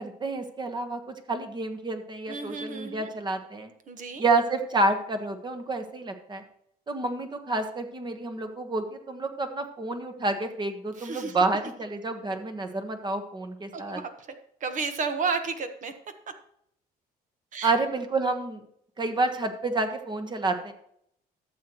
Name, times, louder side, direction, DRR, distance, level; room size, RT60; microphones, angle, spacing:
voice 1, 0.0-3.7 4.2-6.4 6.9-14.0 17.6-18.6 19.0-20.7, right 3 dB, 25° right, 7 dB, 1.4 m, -29 dB
voice 2, 2.3-3.1 3.9-4.2 11.0-11.3 13.7-14.1 14.6-15.9 17.5-17.7, right 4 dB, 50° right, 8 dB, 1.3 m, -32 dB
13.0 x 7.8 x 3.1 m, 0.70 s
cardioid pair, 110°, 17 cm